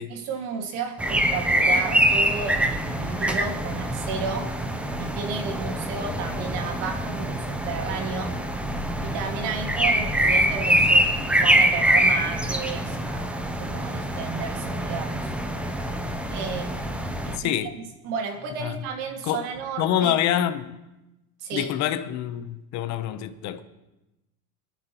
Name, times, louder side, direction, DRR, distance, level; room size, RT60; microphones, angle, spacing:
voice 1, 0.1-4.5 5.0-8.4 9.0-15.3 16.3-16.9 17.2-20.2 21.4-21.7, right 5 dB, 60° right, 2.1 m, -33 dB
sound 1, 1.0-17.4, right 1 dB, 5° right, 0.5 m, -24 dB
voice 2, 17.4-17.8 18.6-18.7 19.2-19.5 19.8-20.8 21.5-23.6, left 11 dB, 40° left, 0.9 m, -26 dB
25.5 x 10.5 x 3.0 m
supercardioid pair, 135°, 45 cm